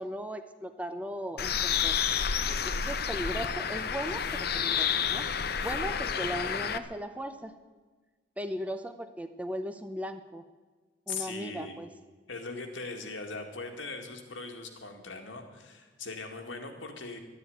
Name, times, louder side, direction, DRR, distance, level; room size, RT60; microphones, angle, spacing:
voice 1, 0.0-2.1 2.6-5.3 5.6-7.6 8.4-10.4 11.1-11.9, equal, 5° right, 9 dB, 0.6 m, -37 dB
Bird, 1.4-6.8, left 7 dB, 50° left, 0.7 m, -30 dB
voice 2, 11.1-11.8 12.3-17.2, left 3 dB, 80° left, 3 dB, 2.1 m, -40 dB
12.5 x 9.9 x 9.4 m, 1.3 s
head